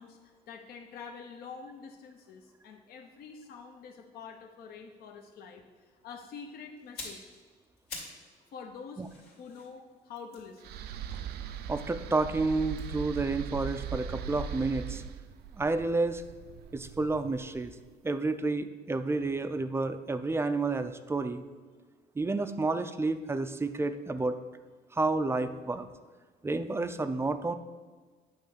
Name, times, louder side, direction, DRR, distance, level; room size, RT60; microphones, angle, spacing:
voice 1, 0.0-7.2 8.5-9.0 9.4-10.7, left 5 dB, 65° left, 2 dB, 0.8 m, -46 dB
sound 1, 6.8-8.3 8.6-11.8 12.7-14.7 15.0-15.2, left 3 dB, 90° left, 2.4 m, -48 dB
sound 2, 10.6-17.8, right 7 dB, 70° right, 0.5 m, -40 dB
voice 2, 11.7-15.0 15.6-16.2 16.7-17.7 18.0-21.4 22.2-24.4 24.9-25.9 26.4-27.5, right 3 dB, 15° right, 10 dB, 0.4 m, -30 dB
9.1 x 3.1 x 6.6 m, 1.4 s
cardioid pair, 110°, 17 cm